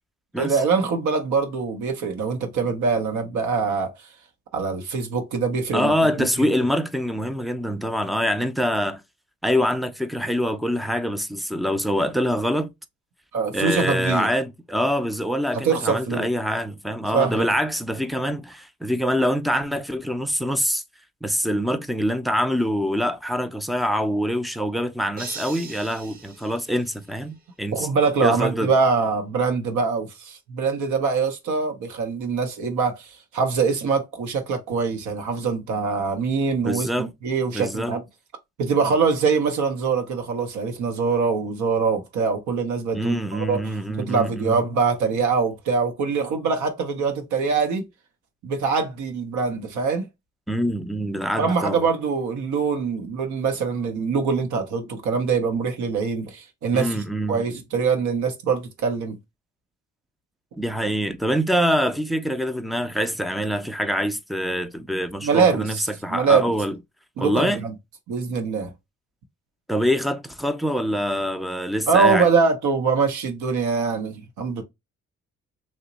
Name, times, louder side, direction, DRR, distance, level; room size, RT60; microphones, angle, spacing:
voice 1, 0.4-3.9 4.5-6.3 13.3-14.3 15.6-16.3 17.1-17.5 27.7-38.0 38.6-47.8 48.4-50.1 51.4-59.2 65.2-65.8 66.1-66.5 67.2-67.7 68.1-68.7 71.9-74.6, right 5 dB, 75° right, 0.7 m, -23 dB
voice 2, 5.7-9.0 9.4-12.7 13.5-20.8 21.2-27.9 28.2-28.7 36.6-37.1 37.5-37.9 42.9-44.6 50.5-51.8 56.7-57.4 60.6-65.8 66.0-66.8 67.2-67.6 69.7-72.3, equal, ahead, 0.3 m, -25 dB
sound 1, 25.2-27.5, right 4 dB, 30° right, 0.7 m, -41 dB
2.9 x 2.1 x 3.8 m
cardioid pair, 90°, 30 cm